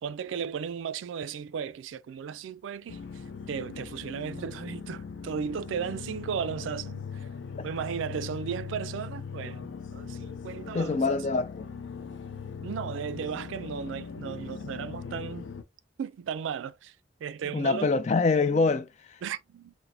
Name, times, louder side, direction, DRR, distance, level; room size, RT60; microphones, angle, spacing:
voice 1, 0.0-3.2 3.5-7.3 7.6-11.2 12.6-15.5 16.0-16.9 17.2-18.0 19.2-19.7, right 7 dB, 85° right, 0.3 m, -35 dB
sound 1, 2.9-15.6, left 5 dB, 90° left, 0.5 m, -40 dB
voice 2, 10.7-11.7 17.5-19.2, left 4 dB, 35° left, 0.3 m, -25 dB
5.9 x 2.1 x 2.6 m
head